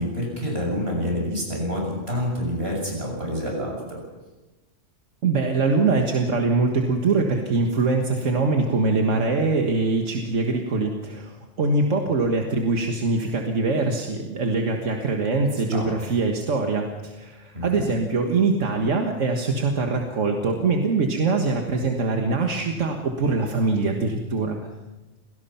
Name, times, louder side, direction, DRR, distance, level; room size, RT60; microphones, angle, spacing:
voice 1, 0.0-4.0 15.7-15.9 17.5-17.9, equal, 55° right, -1 dB, 7.3 m, -27 dB
voice 2, 5.2-11.3 11.6-24.6, right 3 dB, 85° right, 3 dB, 1.9 m, -23 dB
26.5 x 17.5 x 5.8 m, 1.1 s
omnidirectional pair, 1.3 m